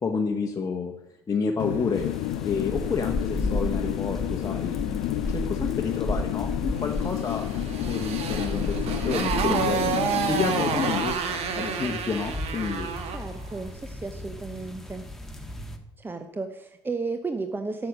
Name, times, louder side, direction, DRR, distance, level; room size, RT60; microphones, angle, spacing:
voice 1, 0.0-0.9 1.3-2.1 2.4-7.5 7.9-10.0 10.3-12.9, left 5 dB, 25° left, 1 dB, 1.1 m, -30 dB
sound 1, 1.6-11.0, left 14 dB, 55° left, 0.5 m, -30 dB
sound 2, 1.9-15.8, left 1 dB, 5° left, 1.6 m, -35 dB
Motorcycle, 7.2-13.3, right 6 dB, 50° right, 1.5 m, -29 dB
voice 2, 13.1-15.1 16.0-17.9, right 3 dB, 15° right, 8 dB, 0.9 m, -33 dB
12.5 x 7.3 x 6.3 m, 0.93 s
figure-of-eight pair, 55°, 14 cm